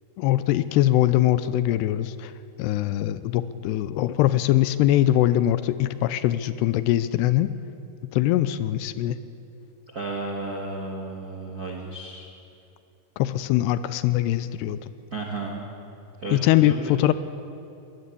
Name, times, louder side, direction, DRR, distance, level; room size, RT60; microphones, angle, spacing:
voice 1, 0.2-2.3 2.6-7.5 8.1-9.2 13.2-14.8 16.3-17.1, left 14 dB, 85° left, 14 dB, 2.8 m, -22 dB
voice 2, 9.9-12.3 15.1-15.7 16.2-16.9, right 2 dB, 45° right, 0 dB, 1.2 m, -33 dB
22.0 x 19.5 x 8.4 m, 2.6 s
omnidirectional pair, 4.7 m